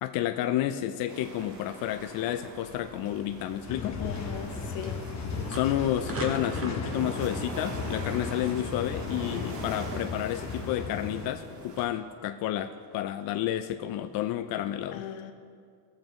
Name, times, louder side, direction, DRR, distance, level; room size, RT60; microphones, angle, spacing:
voice 1, 0.0-4.0 5.5-15.1, left 12 dB, 50° left, 8 dB, 0.4 m, -30 dB
sound 1, 1.1-11.9, right 2 dB, 65° right, 2.0 m, -42 dB
sound 2, 3.7-11.3, left 5 dB, 35° left, 0.9 m, -36 dB
sound 3, 3.9-11.8, right 2 dB, 30° right, 1.6 m, -43 dB
voice 2, 4.0-5.0 14.9-15.3, left 9 dB, 75° left, 7 dB, 1.0 m, -39 dB
14.5 x 7.1 x 3.0 m, 2.1 s
supercardioid pair, 105°, 46 cm